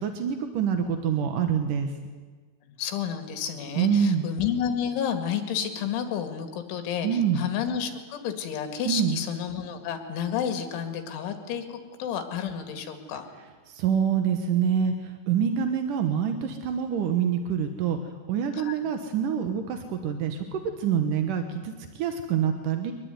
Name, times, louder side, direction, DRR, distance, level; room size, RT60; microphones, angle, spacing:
voice 1, 0.0-1.9 3.8-4.3 7.0-7.5 8.9-9.2 13.7-22.9, right 7 dB, 70° right, 7 dB, 2.1 m, -26 dB
voice 2, 2.8-13.3 18.6-18.8, left 8 dB, 80° left, 7 dB, 4.5 m, -31 dB
23.5 x 20.5 x 9.5 m, 1.4 s
omnidirectional pair, 5.5 m